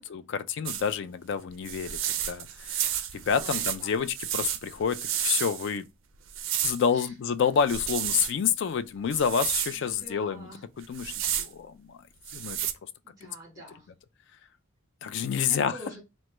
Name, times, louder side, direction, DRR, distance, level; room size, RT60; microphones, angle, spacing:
voice 1, 0.0-5.9 6.6-10.5 10.8-12.0 12.3-12.6 15.0-15.8, left 7 dB, 55° left, 0.3 m, -29 dB
sound 1, 0.7-0.9 1.7-5.8 6.3-6.9 7.6-8.3 9.1-9.8 10.8-11.5 12.3-12.7, right 10 dB, 60° right, 0.4 m, -31 dB
voice 2, 3.3-4.0 6.9-7.1 9.7-10.6 13.0-13.9 15.2-16.0, right 1 dB, 15° right, 1.6 m, -47 dB
3.0 x 2.1 x 3.1 m
head